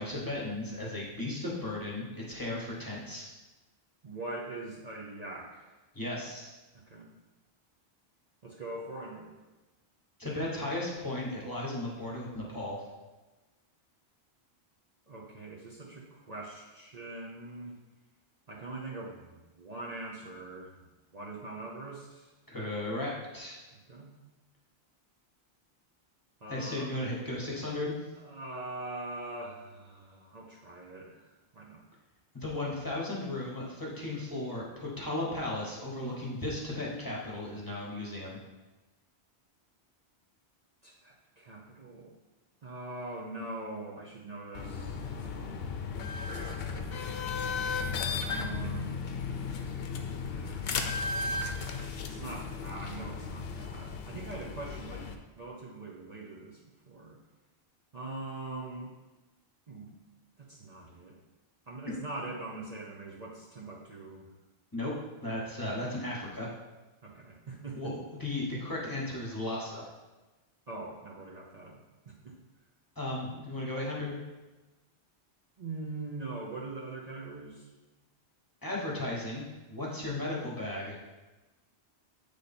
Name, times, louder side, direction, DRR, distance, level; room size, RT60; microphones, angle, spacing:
voice 1, 0.0-3.3 5.9-6.5 10.2-12.8 22.5-23.6 26.5-28.0 32.3-38.4 64.7-64.9 65.2-66.5 67.8-69.9 73.0-74.2 78.6-81.1, left 1 dB, 20° left, -4 dB, 1.2 m, -35 dB
voice 2, 4.0-5.7 6.9-7.1 8.4-9.3 15.1-17.8 18.5-20.8 21.1-22.3 23.9-24.2 26.4-26.9 28.2-31.8 40.8-42.1 42.6-45.7 48.3-49.0 50.3-55.0 55.4-56.6 56.9-57.2 57.9-58.9 59.7-60.0 60.4-61.2 61.7-64.3 67.0-67.9 70.7-72.3 75.6-77.7, right 2 dB, 40° right, -5 dB, 0.8 m, -42 dB
sound 1, 44.5-55.1, left 5 dB, 70° left, 0.8 m, -35 dB
8.1 x 3.3 x 4.2 m, 1.1 s
omnidirectional pair, 1.1 m